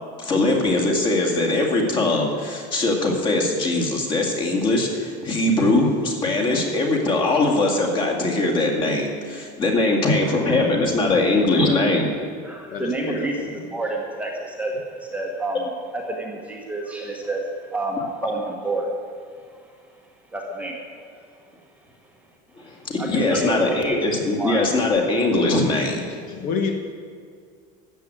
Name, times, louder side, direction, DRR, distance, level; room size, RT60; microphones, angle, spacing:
voice 1, 0.2-12.1 18.2-18.3 22.8-26.1, left 2 dB, 25° left, 2 dB, 2.0 m, -21 dB
voice 2, 10.4-10.8 11.1-11.3 11.6-12.0 12.7-13.5 26.3-26.7, left 5 dB, 45° left, 4 dB, 1.2 m, -29 dB
voice 3, 12.4-18.9 20.3-21.2 23.0-24.0 24.4-24.6, right 2 dB, 5° right, 0 dB, 1.1 m, -29 dB
13.0 x 7.8 x 8.9 m, 2.2 s
cardioid pair, 180°, 20 cm